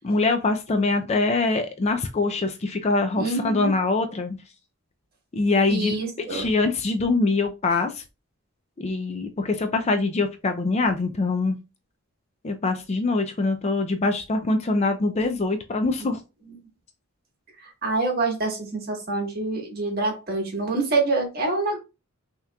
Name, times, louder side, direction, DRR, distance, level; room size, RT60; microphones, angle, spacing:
voice 1, 0.0-4.4 5.3-8.0 8.8-11.6 12.4-16.2, left 3 dB, 30° left, 6 dB, 0.4 m, -24 dB
voice 2, 3.2-3.7 5.7-6.4 17.6-21.8, right 3 dB, 45° right, 1 dB, 1.3 m, -26 dB
5.7 x 2.9 x 2.3 m, 0.28 s
head